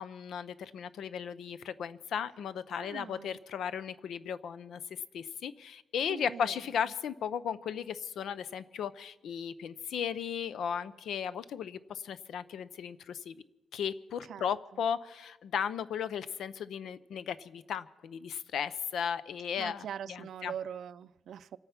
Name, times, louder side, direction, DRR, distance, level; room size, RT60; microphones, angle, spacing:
voice 1, 0.0-4.8 5.1-13.4 13.7-20.5, left 8 dB, 70° left, 0.6 m, -36 dB
voice 2, 2.8-3.4 6.1-6.7 14.2-14.8 19.6-21.6, right 9 dB, 65° right, 0.4 m, -43 dB
25.5 x 9.0 x 5.9 m
wide cardioid pair, 160°, 0 cm